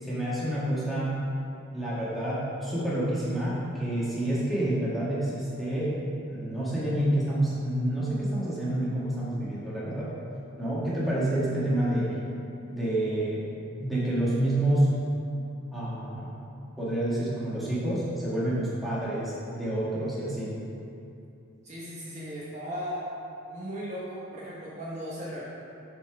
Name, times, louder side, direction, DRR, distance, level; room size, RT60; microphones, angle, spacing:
voice 1, 0.0-1.1 1.7-6.0 6.3-10.1 10.6-12.1 12.6-13.4 13.8-14.9 15.7-16.3 16.8-20.5, right 1 dB, ahead, -9 dB, 1.7 m, -28 dB
voice 2, 21.6-23.1 23.5-25.4, equal, 35° right, -7 dB, 1.1 m, -37 dB
8.0 x 4.4 x 5.9 m, 2.6 s
head